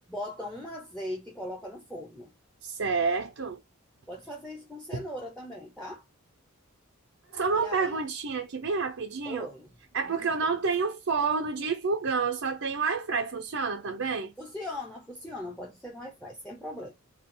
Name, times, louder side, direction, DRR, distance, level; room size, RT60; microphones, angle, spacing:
voice 1, 0.1-2.3 4.1-6.0 7.5-8.0 9.2-9.7 10.0-10.6 14.4-16.9, left 1 dB, 5° left, 0.7 m, -39 dB
voice 2, 2.6-3.6 4.9-5.0 7.3-9.5 9.9-14.3, right 4 dB, 65° right, 0.6 m, -29 dB
4.3 x 2.3 x 3.7 m
head